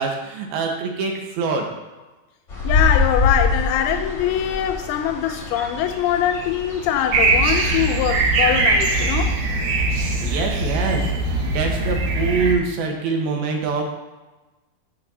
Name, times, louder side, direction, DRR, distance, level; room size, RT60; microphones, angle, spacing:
voice 1, 0.0-1.7 10.2-13.8, right 4 dB, 80° right, 2 dB, 2.9 m, -24 dB
sound 1, 2.5-9.2, left 3 dB, 35° left, 1.1 m, -26 dB
voice 2, 2.6-9.3, left 10 dB, 90° left, 6 dB, 2.5 m, -22 dB
sound 2, 7.1-12.5, right 2 dB, 65° right, 2.2 m, -21 dB
13.0 x 7.2 x 2.7 m, 1.1 s
omnidirectional pair, 4.4 m